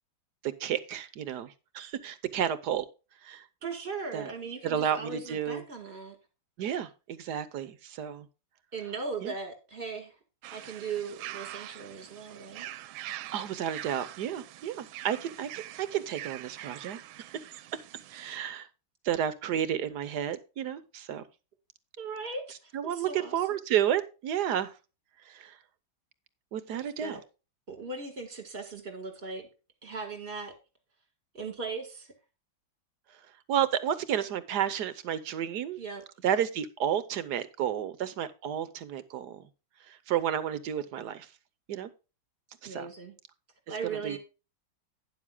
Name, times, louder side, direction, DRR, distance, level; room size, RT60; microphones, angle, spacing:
voice 1, 0.4-2.8 3.2-3.5 4.1-4.3 4.6-5.6 6.6-8.3 9.2-9.3 13.0-17.6 18.1-18.7 19.0-21.2 22.7-24.7 25.3-25.6 26.5-27.2 33.5-35.8 36.2-39.5 39.9-41.3 41.7-41.9 42.6-42.9 43.8-44.2, right 9 dB, 65° right, 1.2 m, -31 dB
voice 2, 3.6-6.2 8.7-10.2 10.5-12.7 22.0-23.4 26.7-27.2 27.7-29.5 29.8-30.5 31.3-32.1 35.8-36.0 42.6-43.1 43.7-44.2, right 4 dB, 30° right, 2.0 m, -38 dB
sound 1, 10.4-18.4, right 14 dB, 85° right, 1.4 m, -44 dB
12.0 x 9.9 x 2.2 m
omnidirectional pair, 2.2 m